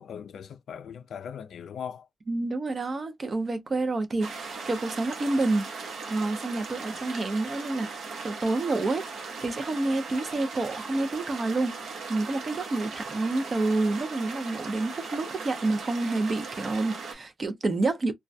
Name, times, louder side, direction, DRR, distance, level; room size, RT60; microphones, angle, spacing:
voice 1, 0.0-2.1, left 7 dB, 75° left, 0.3 m, -39 dB
voice 2, 2.3-5.7 6.1-9.1 9.4-11.8 12.1-18.1, right 2 dB, 35° right, 0.6 m, -28 dB
sound 1, 4.2-17.1, right 4 dB, 75° right, 0.9 m, -38 dB
2.2 x 2.1 x 2.5 m
wide cardioid pair, 135°, 0 cm